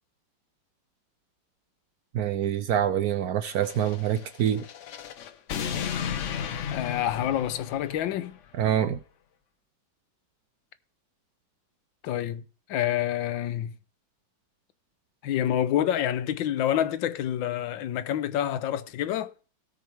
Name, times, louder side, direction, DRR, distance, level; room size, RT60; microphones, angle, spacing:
voice 1, 2.1-4.7 8.5-9.0, right 10 dB, 70° right, 0.9 m, -26 dB
sound 1, 3.5-8.3, left 8 dB, 60° left, 0.8 m, -34 dB
voice 2, 6.7-8.4 12.0-12.4 12.7-13.7 15.2-19.3, left 11 dB, 80° left, 1.4 m, -27 dB
17.0 x 6.3 x 3.4 m
omnidirectional pair, 2.1 m